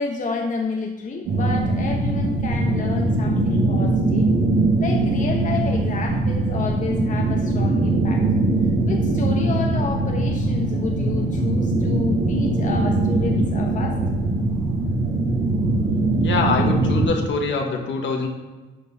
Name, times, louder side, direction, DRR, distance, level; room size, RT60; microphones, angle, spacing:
voice 1, 0.0-4.3 4.8-8.2 8.9-14.0, left 4 dB, 40° left, 1 dB, 1.1 m, -30 dB
Dark Ambient sound windy, 1.2-17.1, right 2 dB, 80° right, 2.5 m, -21 dB
voice 2, 16.2-18.3, left 4 dB, 65° left, 2 dB, 1.5 m, -24 dB
11.5 x 4.5 x 4.1 m, 1.2 s
cardioid pair, 90°, 20 cm